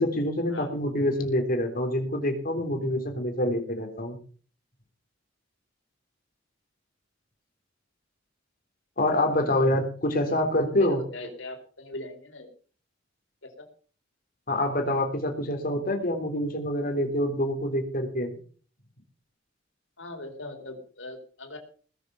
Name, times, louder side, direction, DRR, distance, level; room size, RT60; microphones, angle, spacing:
voice 1, 0.0-4.2 9.0-11.0 14.5-18.3, left 1 dB, 50° left, 4 dB, 3.5 m, -26 dB
voice 2, 10.1-10.4 10.8-12.5 13.4-13.7 20.0-21.6, left 2 dB, 85° left, 5 dB, 4.2 m, -40 dB
20.0 x 7.2 x 7.0 m, 0.43 s
head